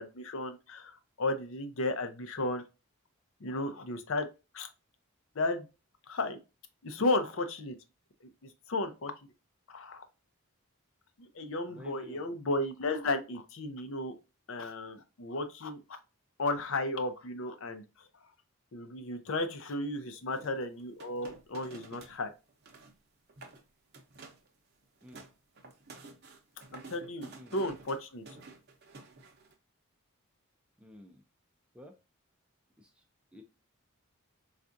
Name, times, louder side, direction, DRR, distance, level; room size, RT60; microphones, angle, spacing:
voice 1, 0.0-2.6 3.4-4.3 4.5-4.7 5.4-5.7 6.1-6.4 6.8-7.8 8.4-9.1 9.7-10.1 11.2-14.1 14.5-16.0 16.4-17.8 18.7-22.3 26.7-28.2, left 2 dB, 65° left, 0.6 m, -34 dB
voice 2, 11.7-12.4 25.0-25.2 27.3-27.6 30.8-31.2 31.7-31.9 32.8-33.0 33.3-33.4, equal, 5° right, 0.4 m, -51 dB
sound 1, 20.3-22.2 22.5-23.0 23.3-23.6 23.9-24.5 24.8-29.5, right 3 dB, 45° right, 0.7 m, -51 dB
4.4 x 2.4 x 2.5 m
head